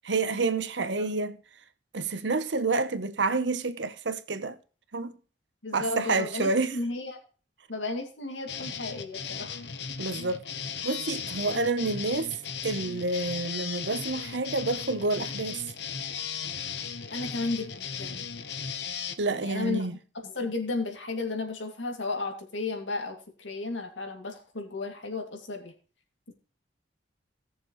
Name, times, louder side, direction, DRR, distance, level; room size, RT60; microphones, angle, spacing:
voice 1, 0.0-1.4 1.9-4.6 4.9-5.1 5.7-6.8 10.0-10.4 10.8-15.7 19.2-20.0, right 3 dB, 70° right, 1.0 m, -29 dB
voice 2, 5.6-7.2 7.7-9.6 17.1-18.3 19.3-19.9 20.2-25.7 26.3-26.4, left 3 dB, 85° left, 2.6 m, -34 dB
sound 1, 8.5-19.1, left 7 dB, 65° left, 1.1 m, -36 dB
17.5 x 6.9 x 3.2 m
head